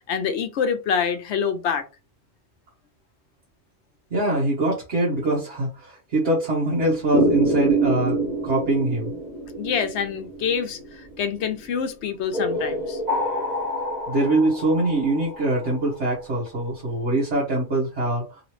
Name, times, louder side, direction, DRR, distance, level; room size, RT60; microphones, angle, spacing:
voice 1, 0.1-1.9 9.6-13.0, left 7 dB, 80° left, 0.9 m, -26 dB
voice 2, 4.1-9.2 14.1-18.4, right 2 dB, 80° right, 1.5 m, -23 dB
sound 1, 7.1-11.4 12.3-16.1, right 1 dB, 40° right, 1.3 m, -26 dB
3.3 x 3.0 x 3.1 m
omnidirectional pair, 1.2 m